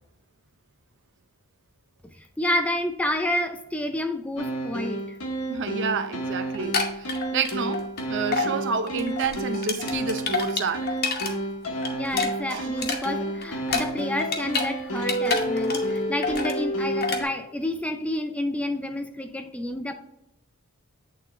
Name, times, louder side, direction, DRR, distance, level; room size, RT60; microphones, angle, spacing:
voice 1, 2.2-5.2 11.9-19.9, left 1 dB, 5° left, 0.4 m, -29 dB
sound 1, 4.4-17.2, right 1 dB, 70° left, 1.1 m, -30 dB
voice 2, 5.5-11.0 12.5-12.9, right 5 dB, 55° right, 0.6 m, -30 dB
sound 2, 6.5-8.0 8.3-8.5 8.9-11.3 11.6-14.7 15.0-16.6 17.0-17.2, left 4 dB, 45° left, 1.0 m, -28 dB
8.7 x 3.7 x 3.2 m
head